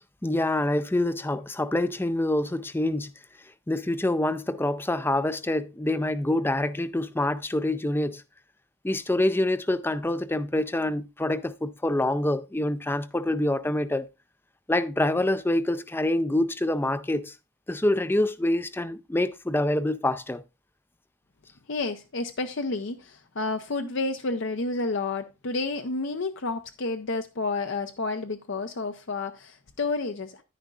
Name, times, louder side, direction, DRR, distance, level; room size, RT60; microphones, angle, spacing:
voice 1, 0.2-3.1 3.7-8.2 8.8-14.1 14.7-17.3 17.7-20.4, left 1 dB, 10° left, 0.4 m, -26 dB
voice 2, 21.7-30.4, left 3 dB, 55° left, 0.7 m, -30 dB
10.0 x 10.0 x 2.4 m
head